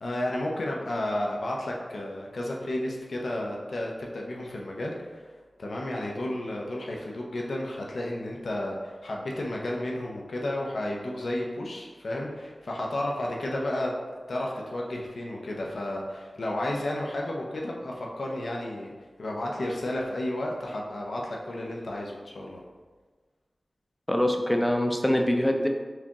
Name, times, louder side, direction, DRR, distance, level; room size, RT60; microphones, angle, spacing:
voice 1, 0.0-5.3 5.6-13.9 14.3-18.9 19.2-22.6, left 1 dB, 80° left, -1 dB, 0.7 m, -32 dB
voice 2, 24.1-25.7, left 1 dB, 10° left, 3 dB, 0.5 m, -24 dB
4.7 x 3.0 x 3.5 m, 1.4 s
wide cardioid pair, 95°, 0 cm